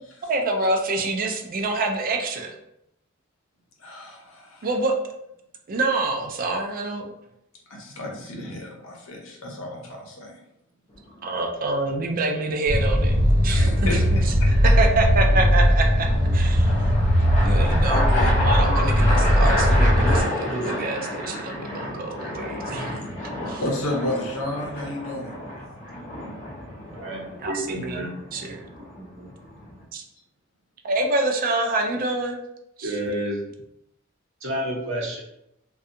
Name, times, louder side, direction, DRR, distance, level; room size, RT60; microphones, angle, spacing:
voice 1, 0.2-2.5 4.6-4.9 5.7-7.1 11.2-16.1 16.3-16.7 17.4-22.9 23.2-23.6 24.8-25.3 27.4-29.3 29.9-30.0 30.8-32.4 32.8-33.0, right 2 dB, 45° right, 3 dB, 0.4 m, -27 dB
voice 2, 3.8-4.7 7.7-10.3 13.5-14.1 14.4-14.5 20.2-20.3 22.9-23.1 23.6-25.3, left 1 dB, 80° left, 0 dB, 0.7 m, -32 dB
sound 1, 10.9-11.4 15.2-29.8, left 1 dB, 35° left, 0.6 m, -31 dB
sound 2, 12.7-20.2, equal, 20° right, 1.3 m, -19 dB
voice 3, 26.9-28.1 32.8-33.4 34.4-35.2, right 1 dB, 65° right, -2 dB, 0.8 m, -29 dB
2.6 x 2.3 x 2.5 m, 0.80 s
head